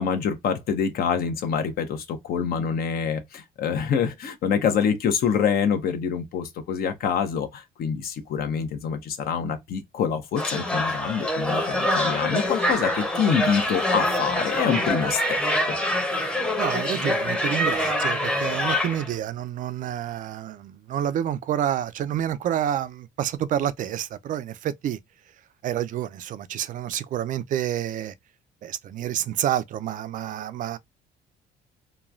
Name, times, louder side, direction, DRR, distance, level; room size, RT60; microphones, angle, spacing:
voice 1, 0.0-15.4 15.7-15.8, left 7 dB, 60° left, 0.8 m, -26 dB
sound 1, 10.4-19.1, left 1 dB, 5° left, 0.8 m, -25 dB
voice 2, 16.6-25.0 25.6-28.1 28.6-30.8, right 11 dB, 50° right, 0.4 m, -28 dB
3.0 x 2.3 x 2.3 m
cardioid pair, 110°, 17 cm